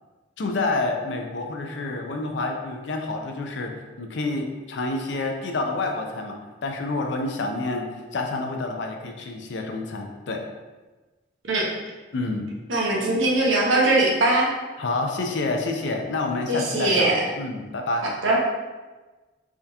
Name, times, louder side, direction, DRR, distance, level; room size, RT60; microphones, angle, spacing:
voice 1, 0.4-3.7 4.0-10.4 12.1-12.5 14.8-18.1, left 2 dB, 65° left, 3 dB, 0.5 m, -28 dB
voice 2, 12.7-14.5 16.5-17.2 18.2-18.4, right 2 dB, 80° right, -3 dB, 0.9 m, -21 dB
3.6 x 2.8 x 3.4 m, 1.2 s
head